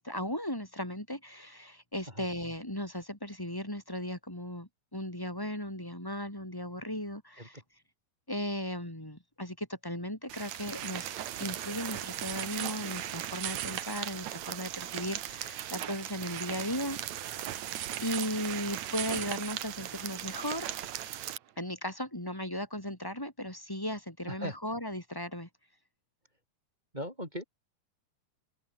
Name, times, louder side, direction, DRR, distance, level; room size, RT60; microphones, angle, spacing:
voice 1, 0.0-7.6 8.3-17.3 18.0-20.7 21.6-25.5, left 1 dB, 5° left, 4.4 m, -37 dB
sound 1, 10.3-21.4, right 12 dB, 75° right, 2.6 m, -37 dB
voice 2, 26.9-27.4, equal, 15° right, 7.1 m, -38 dB
open air
omnidirectional pair, 3.4 m